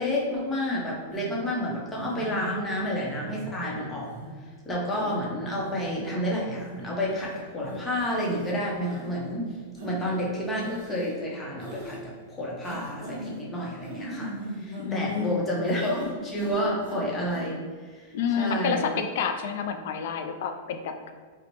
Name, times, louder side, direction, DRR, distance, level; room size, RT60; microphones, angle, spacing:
voice 1, 0.0-4.1 4.7-9.5 9.8-17.6 17.9-18.0 18.4-18.9, equal, 15° left, -4 dB, 0.7 m, -30 dB
sound 1, 1.2-1.3 2.0-2.5 3.1-3.5 4.1-4.3 4.9-5.2 5.7-6.1 6.7-6.8 7.1-7.3 7.7-7.8 8.2-8.5 8.9-9.0 9.8-10.0 10.6-11.1 11.6-12.0 12.6-13.4 13.8-15.3 15.7-16.1 16.3-17.0 17.3-17.4, right 1 dB, 70° right, 0.9 m, -39 dB
voice 2, 14.8-15.4 18.1-21.1, left 6 dB, 65° left, 7 dB, 0.3 m, -29 dB
4.1 x 2.1 x 2.9 m, 1.5 s
supercardioid pair, 140°, 0 cm